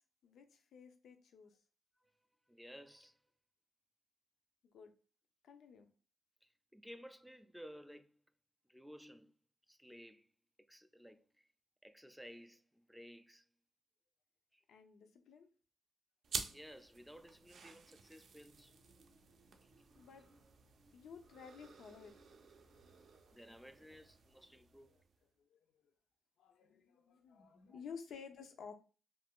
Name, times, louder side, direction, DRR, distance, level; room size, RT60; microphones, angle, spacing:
voice 1, 0.2-1.6 4.6-4.9 5.4-5.9 14.7-15.5 19.9-20.2 20.9-22.2 22.9-23.4 25.4-25.9 26.4-28.7, left 6 dB, 90° left, 0.4 m, -54 dB
voice 2, 2.5-3.2 6.4-8.2 8.7-9.3 9.7-10.3 10.7-11.4 11.8-13.5 14.5-14.6 16.5-18.8 23.3-24.9 27.7-27.8, equal, ahead, 0.3 m, -56 dB
sound 1, 16.2-25.2, right 5 dB, 70° right, 0.4 m, -50 dB
2.4 x 2.3 x 3.5 m
cardioid pair, 85°, 0 cm